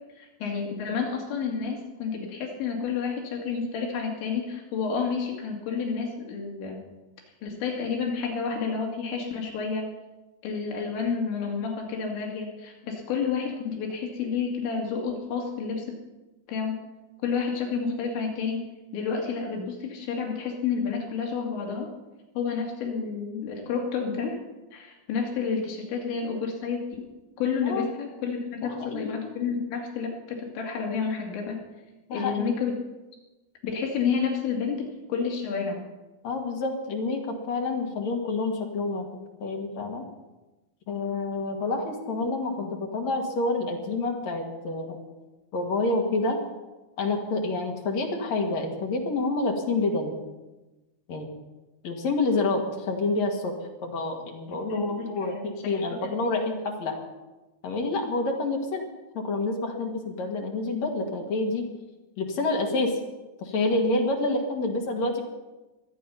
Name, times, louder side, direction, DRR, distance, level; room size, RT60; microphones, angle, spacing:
voice 1, 0.2-6.8 7.4-9.9 10.4-15.9 16.5-16.8 17.2-18.6 18.9-21.9 22.4-24.4 24.7-27.0 27.4-31.6 32.1-32.7 33.6-35.8 54.5-56.1, left 5 dB, 80° left, 0 dB, 4.6 m, -30 dB
voice 2, 28.6-29.1 32.1-32.5 36.2-39.1 39.4-40.0 40.9-45.0 45.5-46.4 47.0-50.2 51.1-51.3 51.8-53.5 53.8-57.0 57.6-58.8 59.1-61.7 62.2-63.0 63.4-65.2, left 2 dB, 50° left, 1 dB, 2.3 m, -28 dB
24.0 x 9.0 x 5.6 m, 1.1 s
omnidirectional pair, 5.2 m